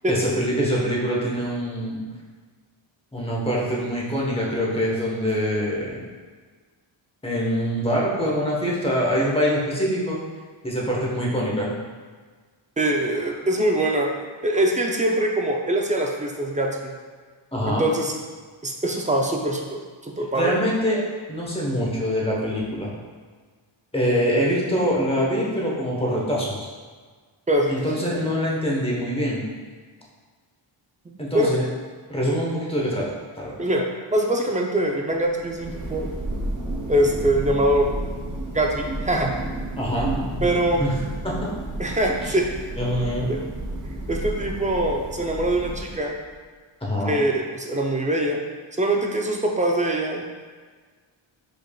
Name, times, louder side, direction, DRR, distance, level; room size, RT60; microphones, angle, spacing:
voice 1, 0.1-2.0 3.1-6.0 7.2-10.2 10.6-11.7 17.5-17.9 20.3-21.0 21.3-22.9 23.9-26.7 27.7-29.4 31.2-31.6 32.1-33.6 39.8-40.5 40.8-40.9 41.2-41.5 42.2-42.3 42.7-43.3 46.8-47.2, equal, 10° left, -4 dB, 0.9 m, -24 dB
voice 2, 12.8-14.1 14.4-16.9 17.7-18.1 18.6-20.5 27.5-27.7 31.1-31.5 33.6-36.1 36.9-37.9 38.5-39.3 40.4-40.9 41.8-42.5 43.3-43.4 43.8-46.2 47.0-48.4 48.8-50.3, right 1 dB, 15° right, 1 dB, 0.4 m, -23 dB
Thunder, 35.3-46.3, right 1 dB, 40° right, 0.8 m, -32 dB
5.1 x 4.5 x 2.3 m, 1.5 s
wide cardioid pair, 120°, 49 cm